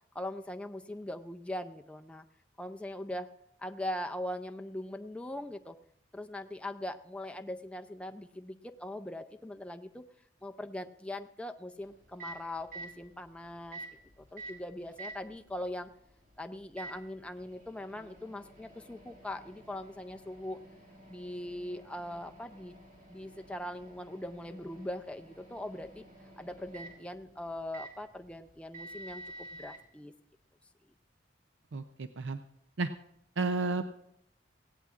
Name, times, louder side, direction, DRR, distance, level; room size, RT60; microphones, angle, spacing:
voice 1, 0.1-2.2 2.6-3.3 3.6-5.8 6.1-10.0 10.4-13.8 14.2-15.9 16.4-20.6 21.1-22.7 23.1-26.0 26.4-30.1, left 1 dB, 5° left, 5 dB, 0.4 m, -41 dB
Microwave oven, 11.8-29.8, right 2 dB, 50° right, 3.6 m, -51 dB
voice 2, 31.7-32.4 32.8-32.9 33.4-33.9, right 3 dB, 85° right, 9 dB, 0.6 m, -32 dB
18.5 x 16.0 x 2.4 m, 0.75 s
head